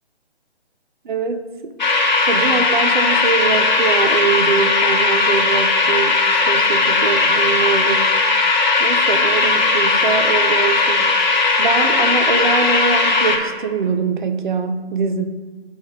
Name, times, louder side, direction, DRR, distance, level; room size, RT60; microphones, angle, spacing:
voice 1, 1.0-1.7 2.3-8.1 8.8-11.3 11.6-15.2, right 5 dB, 45° right, 8 dB, 0.6 m, -23 dB
sound 1, 1.8-13.4, left 3 dB, 45° left, 1.0 m, -17 dB
8.2 x 4.0 x 4.8 m, 1.4 s
figure-of-eight pair, 145°, 33 cm